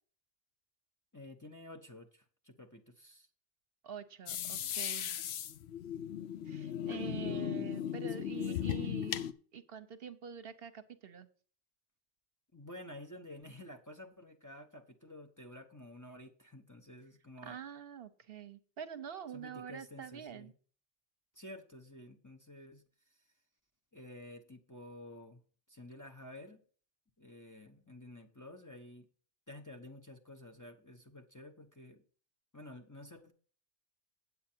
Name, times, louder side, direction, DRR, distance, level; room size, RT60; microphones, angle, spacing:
voice 1, 1.1-3.3 7.0-8.7 12.5-17.6 19.3-20.5 21.3-23.2 23.9-25.4 25.7-26.6 27.2-29.1 29.5-32.0 32.5-33.3, left 1 dB, 20° left, 3 dB, 0.8 m, -51 dB
voice 2, 3.8-5.1 6.4-11.3 17.4-20.5, right 8 dB, 65° right, 11 dB, 0.9 m, -46 dB
sound 1, 4.3-9.3, left 10 dB, 75° left, 0.9 m, -37 dB
8.6 x 8.3 x 4.3 m, 0.43 s
omnidirectional pair, 1.1 m